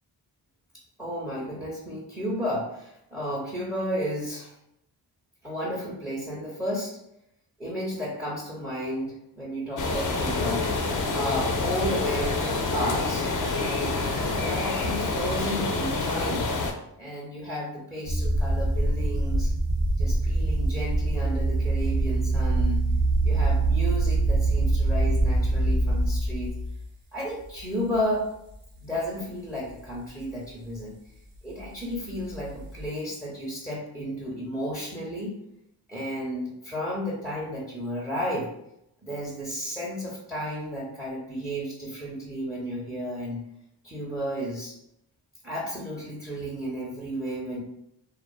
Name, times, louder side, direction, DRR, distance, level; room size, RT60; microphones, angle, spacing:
voice 1, 1.0-4.5 5.4-7.0 7.6-10.7 11.1-13.9 14.4-16.5 17.0-19.5 20.0-22.8 23.2-26.5 27.1-28.3 28.8-30.9 31.4-35.4 35.9-38.5 39.0-43.4 43.8-44.7 45.4-47.6, equal, ahead, -5 dB, 0.8 m, -32 dB
sound 1, 9.8-16.7, left 3 dB, 45° left, 0.5 m, -27 dB
sound 2, 18.0-26.9 27.6-28.0 28.5-28.6 32.2-32.9, right 2 dB, 80° right, 0.7 m, -24 dB
2.4 x 2.4 x 2.3 m, 0.80 s
cardioid pair, 50°, 44 cm